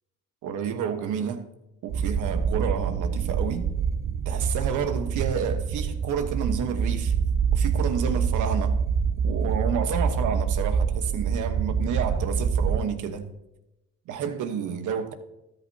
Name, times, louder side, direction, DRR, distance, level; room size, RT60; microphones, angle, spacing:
voice 1, 0.4-1.4 1.8-3.7 4.2-7.1 7.5-8.8 9.2-13.2 14.1-15.1, right 7 dB, 85° right, 1.2 m, -30 dB
sound 1, 1.9-12.8, right 6 dB, 45° right, 0.7 m, -26 dB
13.0 x 10.5 x 2.8 m
cardioid pair, 90°, 30 cm